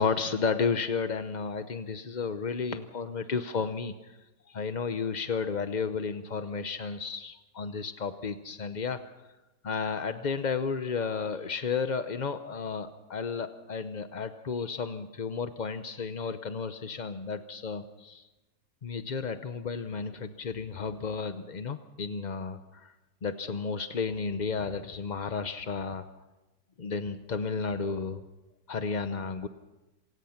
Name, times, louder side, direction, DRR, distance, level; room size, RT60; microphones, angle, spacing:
voice 1, 0.0-4.1 4.5-9.0 9.6-18.2 18.8-22.9 23.2-26.1 26.8-28.2 28.7-29.5, left 5 dB, 45° left, 9 dB, 0.6 m, -32 dB
27.0 x 17.5 x 5.8 m, 1.1 s
omnidirectional pair, 1.8 m